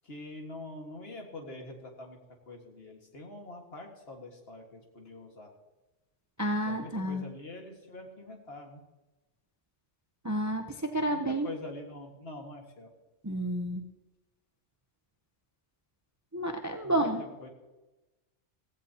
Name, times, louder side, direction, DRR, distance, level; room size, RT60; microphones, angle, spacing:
voice 1, 0.0-2.2 2.5-5.5 6.7-8.8 11.1-12.9 16.8-17.1 17.4-17.5, left 2 dB, 50° left, 2 dB, 2.0 m, -45 dB
voice 2, 6.4-7.2 10.2-11.5 13.2-13.8 16.3-17.2, right 1 dB, 15° right, 5 dB, 0.7 m, -30 dB
16.0 x 16.0 x 2.9 m, 1.1 s
omnidirectional pair, 1.3 m